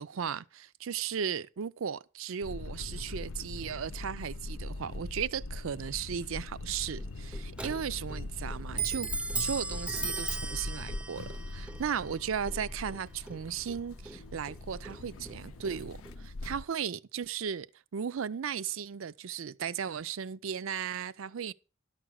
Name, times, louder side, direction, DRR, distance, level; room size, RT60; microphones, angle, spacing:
voice 1, 0.0-9.1 9.3-17.7 17.9-21.5, right 7 dB, 70° right, 0.5 m, -36 dB
sound 1, 2.4-16.6, left 2 dB, 80° left, 0.6 m, -41 dB
Clock, 7.0-16.3, right 4 dB, 5° right, 0.5 m, -39 dB
12.0 x 6.1 x 6.2 m
head